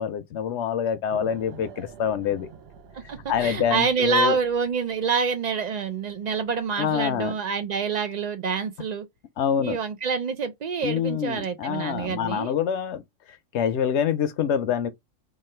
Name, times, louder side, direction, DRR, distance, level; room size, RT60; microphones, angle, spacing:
voice 1, 0.0-2.5 3.3-4.4 6.8-7.3 9.4-9.8 10.8-13.0 13.5-14.9, left 8 dB, 65° left, 0.8 m, -26 dB
sound 1, 1.1-4.8, right 7 dB, 60° right, 0.8 m, -46 dB
voice 2, 2.9-9.1 9.6-12.5, right 5 dB, 90° right, 0.3 m, -27 dB
3.1 x 2.3 x 4.2 m
omnidirectional pair, 1.3 m